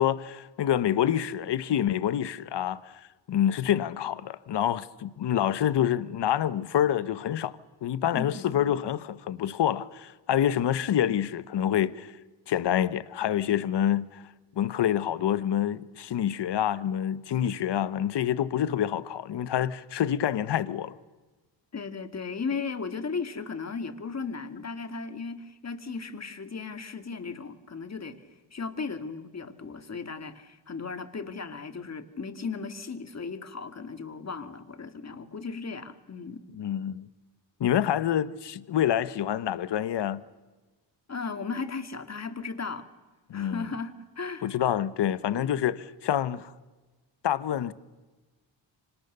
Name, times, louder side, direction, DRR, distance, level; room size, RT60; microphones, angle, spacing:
voice 1, 0.0-7.5 7.8-12.1 12.5-14.2 14.6-20.9 36.5-37.1 37.6-40.2 43.3-43.7 44.4-46.5 47.2-47.7, left 10 dB, 65° left, 1.2 m, -27 dB
voice 2, 8.1-8.8 21.7-36.4 41.1-42.9 43.3-44.6 45.2-45.6, left 4 dB, 35° left, 2.3 m, -36 dB
29.0 x 25.5 x 6.8 m
cardioid pair, 100°, 46 cm